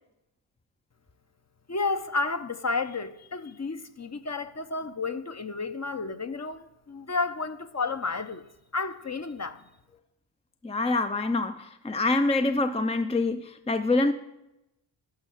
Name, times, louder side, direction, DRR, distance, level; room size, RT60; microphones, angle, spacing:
voice 1, 1.7-8.4 8.7-9.6, left 3 dB, 30° left, 0.9 m, -31 dB
voice 2, 10.6-14.1, left 2 dB, 15° left, 0.6 m, -25 dB
12.5 x 5.5 x 9.2 m
cardioid pair, 60°, 50 cm